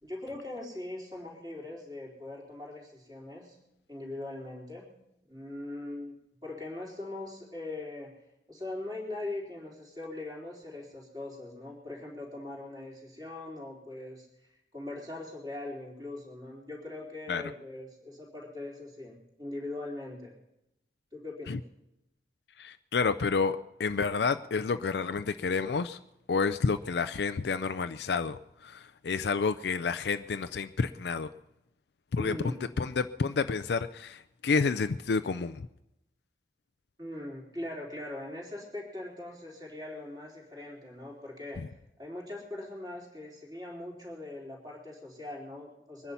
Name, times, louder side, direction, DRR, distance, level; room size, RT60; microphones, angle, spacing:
voice 1, 0.0-3.6 3.9-4.9 5.3-8.1 8.5-14.3 14.7-20.4 21.1-21.6 32.2-32.6 37.0-41.6 42.0-46.1, left 2 dB, 20° right, -2 dB, 3.6 m, -41 dB
voice 2, 22.6-26.0 26.3-31.3 32.1-35.7 41.6-41.7, left 4 dB, 70° left, 10 dB, 0.4 m, -30 dB
22.5 x 10.0 x 5.6 m, 0.88 s
head